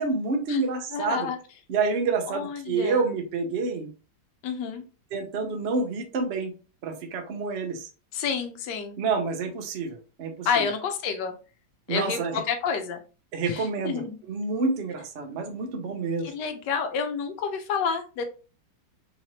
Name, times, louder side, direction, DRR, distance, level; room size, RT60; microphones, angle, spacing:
voice 1, 0.0-1.3 1.7-3.9 5.1-6.5 6.8-7.9 9.0-10.7 11.9-12.4 13.3-16.3, right 4 dB, 70° right, 4 dB, 0.6 m, -28 dB
voice 2, 0.9-1.4 2.3-3.1 4.4-4.8 8.1-9.0 10.4-11.3 11.9-13.0 13.4-14.2 16.2-18.2, left 6 dB, 70° left, 7 dB, 1.2 m, -29 dB
3.9 x 3.0 x 2.8 m, 0.34 s
omnidirectional pair, 2.2 m